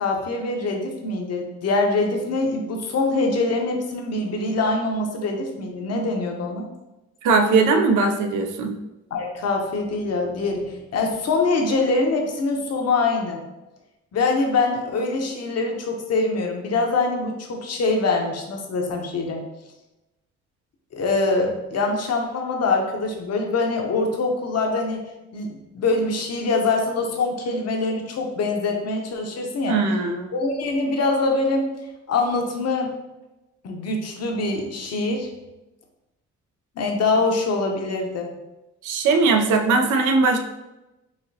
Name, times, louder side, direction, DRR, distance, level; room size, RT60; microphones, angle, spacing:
voice 1, 0.0-6.6 9.1-13.4 14.1-19.4 20.9-25.0 25.3-29.8 30.3-31.7 32.1-32.9 33.6-35.3 36.8-38.3, left 3 dB, 55° left, 2 dB, 0.9 m, -24 dB
voice 2, 7.2-8.8 29.7-30.3 38.8-40.4, right 4 dB, 80° right, 5 dB, 0.6 m, -19 dB
4.9 x 3.1 x 2.8 m, 1.0 s
cardioid pair, 90°, 30 cm